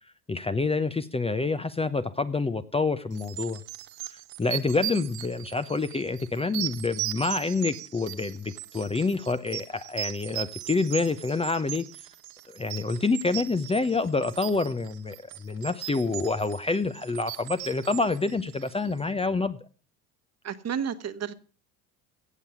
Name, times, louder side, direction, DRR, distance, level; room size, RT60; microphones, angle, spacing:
voice 1, 0.3-3.6 4.4-11.8 12.5-19.6, left 3 dB, 15° left, 0.9 m, -27 dB
sound 1, 3.2-19.0, right 15 dB, 55° right, 1.2 m, -38 dB
voice 2, 20.4-21.3, right 7 dB, 35° right, 1.4 m, -31 dB
16.5 x 7.2 x 7.0 m
hypercardioid pair, 75°, 45 cm